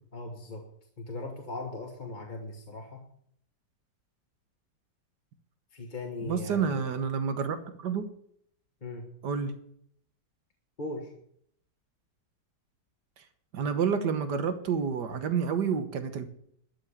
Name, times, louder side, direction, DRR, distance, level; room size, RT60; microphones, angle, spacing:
voice 1, 0.1-0.6 1.0-3.0 5.7-7.0 8.8-9.1 10.8-11.1, left 2 dB, 30° left, 1 dB, 1.5 m, -39 dB
voice 2, 6.2-8.1 9.2-9.5 13.5-16.3, right 6 dB, 75° right, 10 dB, 1.8 m, -29 dB
13.0 x 6.4 x 9.8 m, 0.68 s
omnidirectional pair, 1.8 m